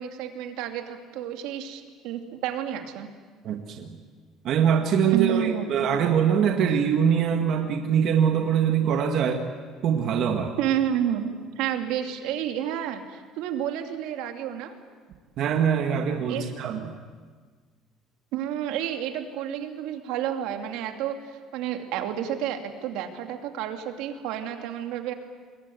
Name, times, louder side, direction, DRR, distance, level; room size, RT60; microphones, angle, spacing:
voice 1, 0.0-3.1 5.1-5.7 10.6-11.3 11.6-14.7 16.3-16.5 18.3-25.1, right 10 dB, 70° right, 5 dB, 2.6 m, -30 dB
voice 2, 3.4-4.0 4.4-9.4 9.8-10.6 15.4-16.9, right 7 dB, 45° right, 4 dB, 1.7 m, -23 dB
27.0 x 21.5 x 9.3 m, 1.5 s
cardioid pair, 180°, 0 cm